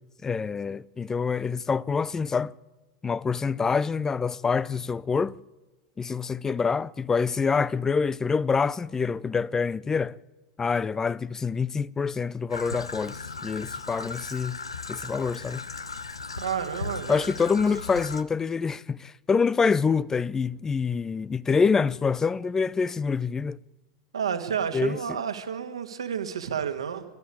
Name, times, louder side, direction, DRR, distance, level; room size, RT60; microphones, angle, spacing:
voice 1, 0.2-2.5 3.0-5.3 6.0-10.2 10.6-14.6 14.9-15.6 17.1-23.6 24.7-25.0, left 5 dB, 20° left, 0.6 m, -26 dB
Traffic noise roadway noise / Trickle dribble, 12.5-18.2, left 4 dB, 90° left, 0.9 m, -37 dB
voice 2, 16.4-17.3 24.1-27.1, right 7 dB, 80° right, 1.9 m, -30 dB
27.0 x 12.5 x 8.6 m
figure-of-eight pair, 90°, 3 cm